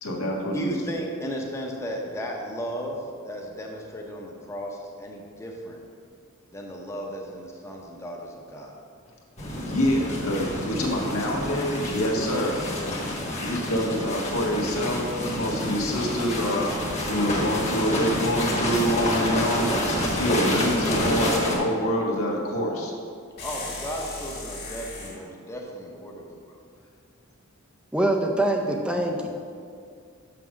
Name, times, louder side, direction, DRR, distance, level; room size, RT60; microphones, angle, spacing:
voice 1, 0.0-0.8 9.5-12.6 13.4-22.9 28.6-29.0, equal, 75° left, -1 dB, 1.5 m, -26 dB
voice 2, 0.5-5.8 6.5-8.7 13.2-13.3 23.4-26.2, equal, 15° left, -1 dB, 0.8 m, -35 dB
sound 1, 9.4-21.6, left 1 dB, 30° left, 1.4 m, -28 dB
sound 2, 23.4-25.2, left 3 dB, 50° left, 2.0 m, -37 dB
voice 3, 27.9-29.3, right 1 dB, 5° right, 1 dB, 0.4 m, -24 dB
6.2 x 5.9 x 6.2 m, 2.2 s
head